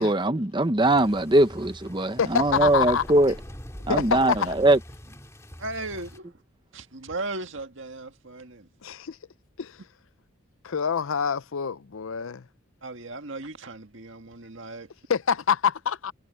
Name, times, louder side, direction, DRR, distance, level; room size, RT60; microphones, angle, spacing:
voice 1, 0.0-3.4 3.9-4.8, right 1 dB, 20° right, 1.0 m, -21 dB
sound 1, 0.8-6.2, equal, 15° left, 2.6 m, -43 dB
voice 2, 2.2-3.0 3.9-4.5 8.8-9.2 9.6-9.7 10.6-12.4 15.1-16.1, left 6 dB, 70° left, 0.6 m, -26 dB
voice 3, 5.6-6.3 6.7-8.7 12.8-14.9, right 2 dB, 60° right, 1.8 m, -36 dB
head